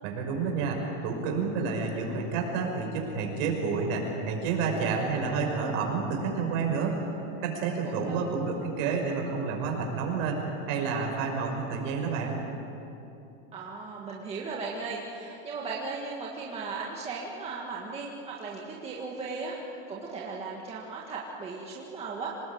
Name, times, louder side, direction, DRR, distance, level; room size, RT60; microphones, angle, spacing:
voice 1, 0.0-7.0 7.4-10.4 10.6-12.4, right 5 dB, 45° right, 1 dB, 5.7 m, -29 dB
voice 2, 7.8-8.4 13.5-22.3, right 4 dB, 15° right, -3 dB, 1.7 m, -37 dB
26.0 x 19.5 x 8.6 m, 2.9 s
supercardioid pair, 180°, 37 cm